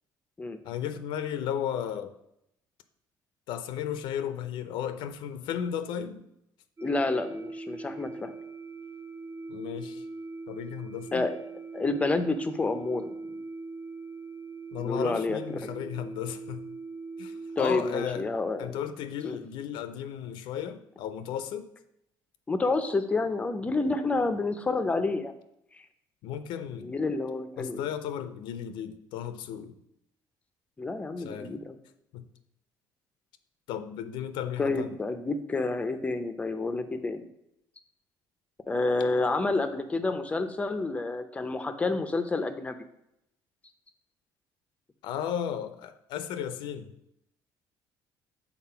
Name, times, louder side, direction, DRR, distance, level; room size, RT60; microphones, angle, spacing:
voice 1, 0.6-2.2 3.5-6.2 9.5-10.0 10.5-11.3 14.7-16.7 17.2-18.3 18.6-21.7 26.2-26.9 27.6-29.8 31.2-31.6 32.1-32.3 33.7-35.0 45.0-46.9, left 9 dB, 75° left, 11 dB, 0.5 m, -34 dB
voice 2, 6.8-8.4 11.1-11.4 11.7-13.4 14.8-15.4 17.6-18.8 19.2-19.4 22.5-25.3 26.8-27.8 30.8-31.8 34.6-37.3 38.7-42.8, left 3 dB, 15° left, 9 dB, 0.5 m, -29 dB
sound 1, 6.8-17.8, right 3 dB, 30° right, 0.6 m, -41 dB
5.8 x 4.1 x 5.6 m, 0.79 s
cardioid pair, 145°, 8 cm